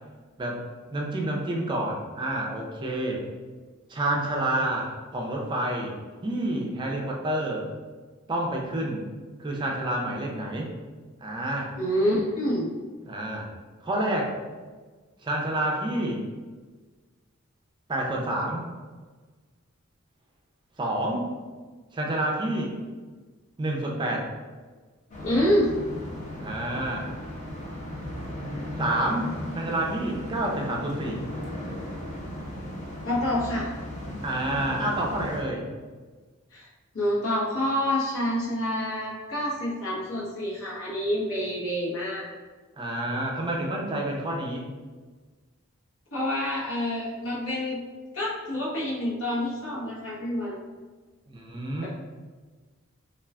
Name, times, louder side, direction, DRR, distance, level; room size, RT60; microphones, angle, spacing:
voice 1, 0.9-3.2 3.9-5.9 6.2-7.7 8.3-9.0 9.4-10.7 11.2-11.7 13.0-13.5 13.8-14.3 15.2-16.2 17.9-18.7 20.8-21.3 21.9-22.7 23.6-24.3 26.4-27.1 28.8-29.3 29.5-31.2 34.2-35.7 42.8-44.7 51.3-51.9, right 1 dB, 20° right, -1 dB, 0.4 m, -28 dB
voice 2, 11.8-12.7 25.2-25.7 33.0-33.7 36.5-36.7 36.9-42.3 46.1-47.8 48.1-50.6 51.8-51.9, left 1 dB, 85° left, -6 dB, 0.9 m, -27 dB
sound 1, 25.1-35.4, left 1 dB, 35° left, 0.6 m, -36 dB
2.3 x 2.3 x 3.3 m, 1.4 s
head